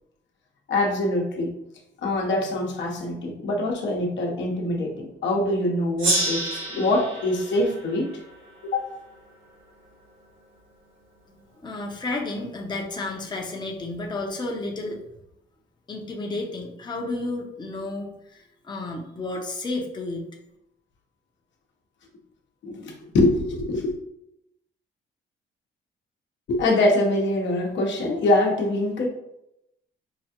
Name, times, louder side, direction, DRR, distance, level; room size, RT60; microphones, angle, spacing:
voice 1, 0.7-1.5 2.0-8.1 8.6-8.9 22.6-23.9 26.5-29.1, left 2 dB, 65° left, 0 dB, 1.0 m, -24 dB
Gong, 6.0-9.1, right 2 dB, 80° right, 1.3 m, -29 dB
voice 2, 11.3-15.0 15.9-20.3, left 2 dB, 20° left, 0 dB, 0.7 m, -32 dB
5.8 x 2.3 x 2.9 m, 0.83 s
cardioid pair, 90°, 20 cm